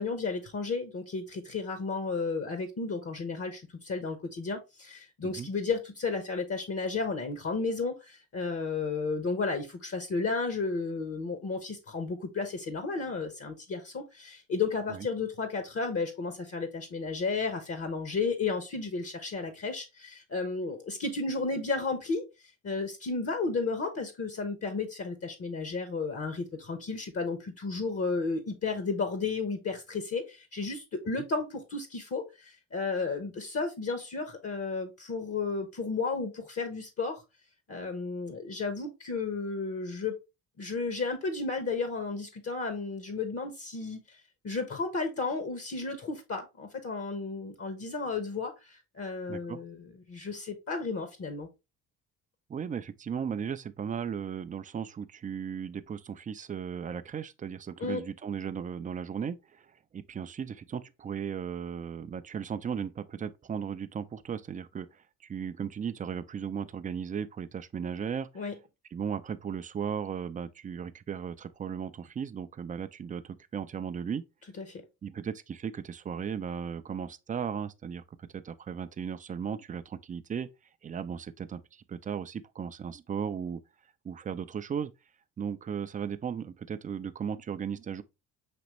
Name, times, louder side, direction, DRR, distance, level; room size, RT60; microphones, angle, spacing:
voice 1, 0.0-22.2 22.6-37.2 37.7-40.1 40.6-44.0 44.4-51.5 57.8-58.0 68.3-68.5 74.6-74.8, left 4 dB, 40° left, 0.9 m, -33 dB
voice 2, 49.3-49.6 52.5-68.3 68.9-74.2 75.0-80.5 80.8-83.6 84.0-84.9 85.4-88.0, right 7 dB, 20° right, 0.4 m, -36 dB
5.2 x 2.9 x 2.9 m
supercardioid pair, 70°, 38 cm